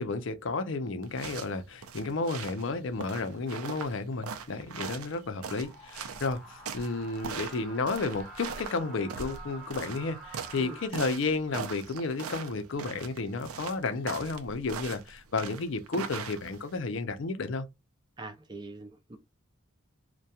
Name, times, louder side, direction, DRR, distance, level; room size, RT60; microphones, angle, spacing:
voice 1, 0.0-17.7, left 3 dB, 60° left, 0.5 m, -32 dB
sound 1, 1.0-16.8, right 6 dB, 90° right, 0.4 m, -41 dB
sound 2, 5.6-10.9, right 2 dB, 5° left, 1.1 m, -48 dB
voice 2, 18.2-19.2, right 2 dB, 20° right, 0.4 m, -43 dB
2.8 x 2.2 x 2.3 m
head